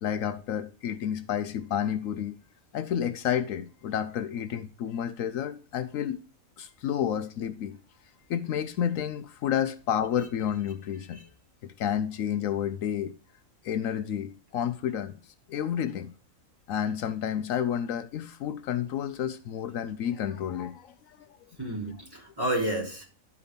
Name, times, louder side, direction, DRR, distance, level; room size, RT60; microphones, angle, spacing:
voice 1, 0.0-2.4 2.7-6.2 6.6-7.8 8.3-11.2 11.6-13.1 13.6-15.2 15.5-16.1 16.7-21.2, left 9 dB, 75° left, 1.0 m, -30 dB
voice 2, 21.6-23.0, right 1 dB, 15° right, 3.5 m, -30 dB
11.5 x 4.8 x 5.2 m
omnidirectional pair, 1.4 m